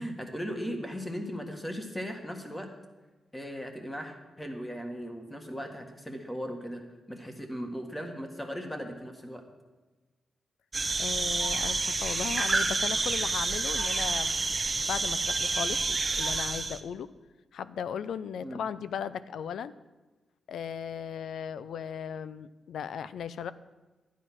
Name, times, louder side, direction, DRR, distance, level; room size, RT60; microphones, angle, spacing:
voice 1, 0.0-2.7 3.3-6.8 7.1-9.4 18.4-18.6, equal, 10° left, 4 dB, 1.7 m, -37 dB
sound 1, 10.7-16.8, right 3 dB, 25° right, 0.9 m, -29 dB
voice 2, 11.0-17.1 17.5-19.7 20.5-23.5, left 8 dB, 90° left, 15 dB, 0.5 m, -37 dB
12.5 x 9.3 x 6.2 m, 1.2 s
wide cardioid pair, 120°, 0 cm